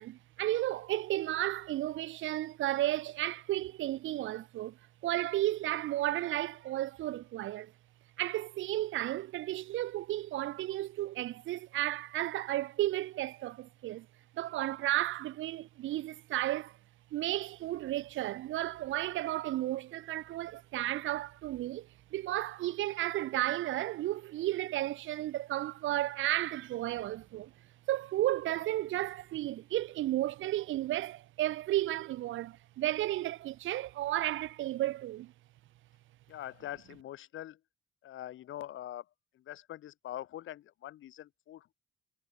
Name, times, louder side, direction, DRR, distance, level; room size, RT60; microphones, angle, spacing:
voice 1, 0.0-4.8 5.0-7.7 8.2-14.1 14.4-16.7 17.1-27.5 27.9-35.3, right 15 dB, 80° right, 0.9 m, -33 dB
voice 2, 36.3-37.6 38.0-39.0 39.3-41.7, left 13 dB, 80° left, 4.7 m, -43 dB
cardioid pair, 90°, 20 cm